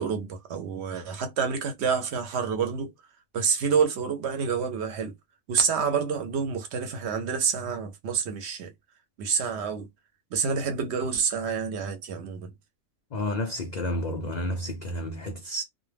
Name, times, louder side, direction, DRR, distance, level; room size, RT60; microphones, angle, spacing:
voice 1, 0.0-2.9 3.3-5.1 5.5-8.7 9.2-9.9 10.3-12.5, right 6 dB, 65° right, 0.8 m, -28 dB
voice 2, 13.1-15.6, left 1 dB, 90° left, 0.3 m, -31 dB
2.2 x 2.2 x 3.2 m
omnidirectional pair, 1.4 m